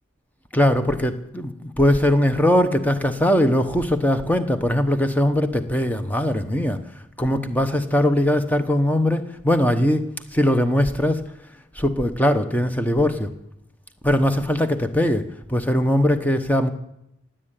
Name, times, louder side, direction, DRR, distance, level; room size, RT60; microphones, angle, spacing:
voice 1, 0.5-6.8 7.2-11.2 11.7-13.3 14.0-16.7, left 1 dB, 10° left, 8 dB, 1.0 m, -20 dB
17.0 x 8.9 x 9.0 m, 0.82 s
head